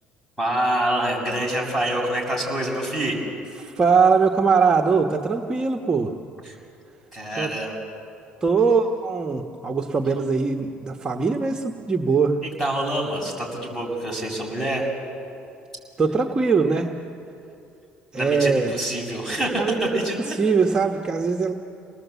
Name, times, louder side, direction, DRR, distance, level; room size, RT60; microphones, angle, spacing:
voice 1, 0.4-3.2 6.4-6.6 7.1-7.8 12.6-14.9 18.2-20.3, right 1 dB, 10° left, -1 dB, 7.2 m, -26 dB
voice 2, 3.6-6.2 7.4-7.5 8.4-12.4 16.0-17.0 18.1-18.8 19.6-21.5, right 5 dB, 25° right, 2 dB, 1.3 m, -21 dB
28.5 x 19.5 x 8.3 m, 2.7 s
cardioid pair, 120°, 3 cm